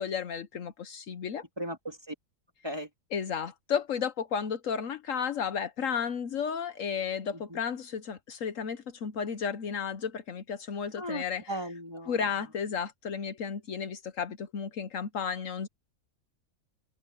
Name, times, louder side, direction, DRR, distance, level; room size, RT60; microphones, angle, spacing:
voice 1, 0.0-1.4 3.1-11.6 12.1-15.7, left 7 dB, 65° left, 1.3 m, -33 dB
voice 2, 1.6-2.1 2.6-2.9 7.3-7.6 11.0-12.1, equal, 20° right, 3.3 m, -37 dB
omnidirectional pair, 1.5 m